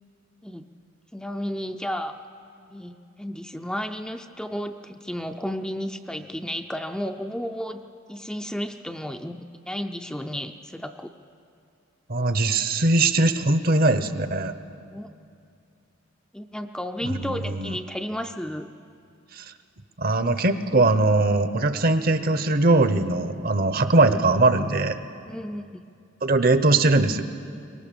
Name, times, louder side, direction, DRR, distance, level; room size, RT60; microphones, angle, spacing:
voice 1, 1.1-2.2 2.7-7.8 8.1-11.1 14.9-15.1 16.3-18.7 23.7-23.9 25.3-25.6, equal, 5° left, 5 dB, 0.5 m, -33 dB
voice 2, 12.1-14.5 17.2-17.8 19.4-19.5 20.0-25.0 26.2-27.2, right 2 dB, 45° right, 11 dB, 0.8 m, -21 dB
23.0 x 19.0 x 6.9 m, 2.5 s
head